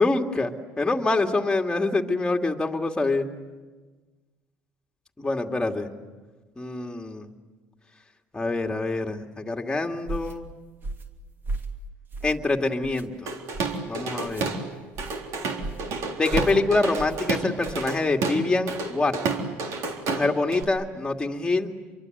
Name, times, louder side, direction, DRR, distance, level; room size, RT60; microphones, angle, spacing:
voice 1, 0.0-3.3 5.2-5.9 6.6-7.3 8.3-10.5 12.2-13.3 13.9-14.5 16.1-19.2 20.1-21.7, left 3 dB, 15° left, 3 dB, 2.4 m, -25 dB
sound 1, 10.1-10.3 10.8-11.1 11.4-11.8 12.1-12.5 12.8-13.0 13.5-13.8 14.2-14.5 14.9-15.2 15.6-15.9 16.3-16.6 17.0-17.2 17.6-17.9, right 2 dB, 35° right, 2.8 m, -34 dB
Drum kit / Drum, 13.3-14.6 15.0-20.6, right 4 dB, 60° right, 3.7 m, -30 dB
28.5 x 23.5 x 8.1 m, 1.3 s
supercardioid pair, 95°, 6 cm